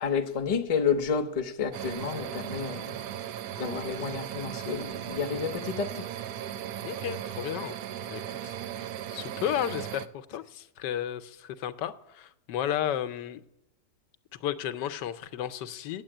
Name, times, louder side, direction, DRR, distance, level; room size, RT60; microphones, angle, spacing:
voice 1, 0.0-3.0 3.6-6.0, left 6 dB, 30° left, 0.7 m, -30 dB
sound 1, 1.7-10.1, right 10 dB, 70° right, 1.1 m, -37 dB
voice 2, 6.8-7.8 8.1-8.6 9.1-13.4 14.4-16.0, left 10 dB, 90° left, 1.3 m, -33 dB
9.1 x 7.8 x 8.8 m
omnidirectional pair, 1.8 m